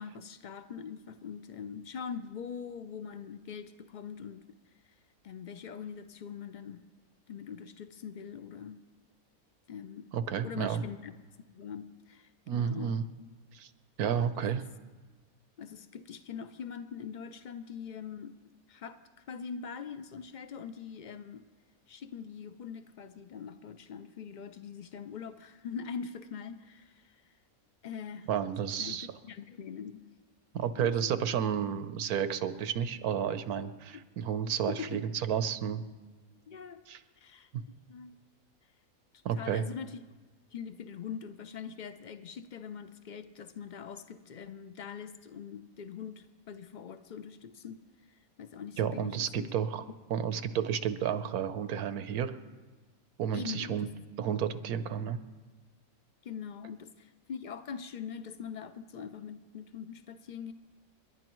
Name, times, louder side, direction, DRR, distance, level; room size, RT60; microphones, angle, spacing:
voice 1, 0.0-4.4 5.2-6.8 7.3-8.8 9.7-10.1 10.4-11.1 11.5-13.0 14.1-14.3 15.6-18.3 18.7-19.0 19.3-21.5 21.9-27.2 27.8-28.3 28.8-30.0 30.8-31.2 34.7-35.1 36.5-36.8 37.2-38.2 39.3-40.0 40.5-47.8 48.1-49.5 53.3-53.9 56.2-60.5, left 7 dB, 75° left, 11 dB, 0.4 m, -43 dB
voice 2, 10.1-10.8 12.5-13.0 13.5-13.7 14.0-14.6 28.3-29.1 30.5-35.9 36.9-37.0 39.2-39.6 48.8-49.8 50.1-52.4 53.2-53.9 54.2-55.2, right 8 dB, 90° right, 11 dB, 1.3 m, -31 dB
30.0 x 11.0 x 3.1 m, 1.3 s
omnidirectional pair, 1.5 m